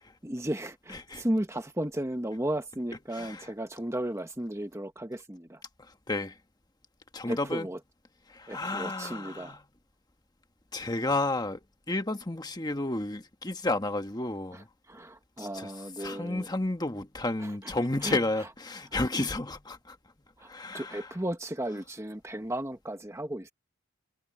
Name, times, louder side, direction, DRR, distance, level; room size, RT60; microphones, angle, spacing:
voice 1, 0.2-5.6 7.3-7.8 8.5-9.6 14.5-14.6 14.9-16.5 17.4-17.7 18.0-18.2 19.0-19.1 20.4-23.5, right 1 dB, 15° right, 1.1 m, -34 dB
voice 2, 0.9-1.2 3.1-3.5 5.8-6.4 7.1-7.7 8.3-9.6 10.7-14.7 15.4-15.7 16.0-20.0 20.4-21.1, left 2 dB, 20° left, 1.2 m, -32 dB
head